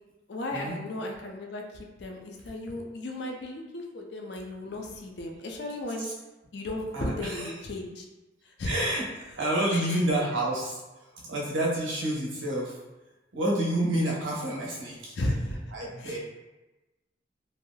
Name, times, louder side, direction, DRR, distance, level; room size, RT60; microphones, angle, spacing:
voice 1, 0.3-6.1 6.5-8.0 8.6-8.8 9.7-10.0 15.2-15.6 16.0-16.2, left 1 dB, 60° left, 1 dB, 0.4 m, -35 dB
voice 2, 6.9-7.6 8.6-9.0 9.4-10.8 11.1-12.8 13.3-15.2 15.7-16.2, right 1 dB, 80° right, -4 dB, 0.9 m, -29 dB
3.3 x 2.7 x 2.2 m, 1.1 s
head